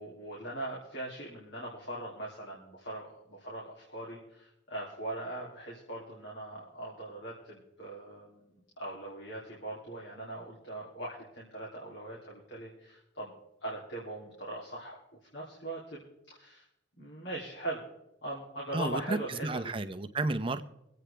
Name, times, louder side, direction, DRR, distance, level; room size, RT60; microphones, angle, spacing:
voice 1, 0.0-13.3 13.6-14.9 15.3-16.0 16.3-16.6 17.0-17.8 18.2-19.7, right 1 dB, 75° left, -5 dB, 2.9 m, -41 dB
voice 2, 18.7-20.8, right 2 dB, 25° right, 9 dB, 0.6 m, -32 dB
25.0 x 8.6 x 3.4 m, 0.86 s
head